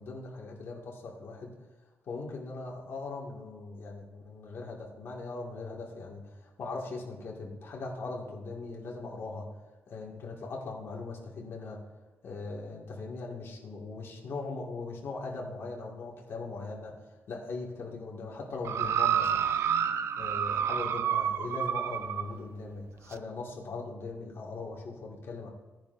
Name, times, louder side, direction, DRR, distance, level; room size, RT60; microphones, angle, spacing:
voice 1, 0.0-1.5 2.1-9.5 9.9-11.8 12.2-17.0 17.3-19.5 20.2-25.5, left 3 dB, 55° left, -2 dB, 2.1 m, -40 dB
sound 1, 18.6-22.3 23.1-23.2, right 9 dB, 70° right, 0.5 m, -29 dB
17.0 x 10.0 x 2.7 m, 1.2 s
wide cardioid pair, 145°, 5 cm